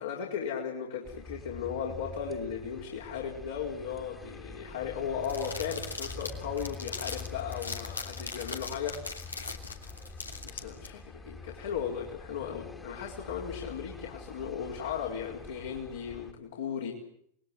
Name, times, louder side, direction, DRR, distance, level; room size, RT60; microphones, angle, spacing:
voice 1, 0.0-9.5 10.4-16.9, left 7 dB, 60° left, -2 dB, 4.7 m, -36 dB
sound 1, 1.0-16.3, left 3 dB, 10° left, 2.5 m, -46 dB
sound 2, 5.2-10.9, left 4 dB, 80° left, 3.0 m, -40 dB
28.5 x 21.0 x 7.8 m, 0.71 s
figure-of-eight pair, 90°, 0 cm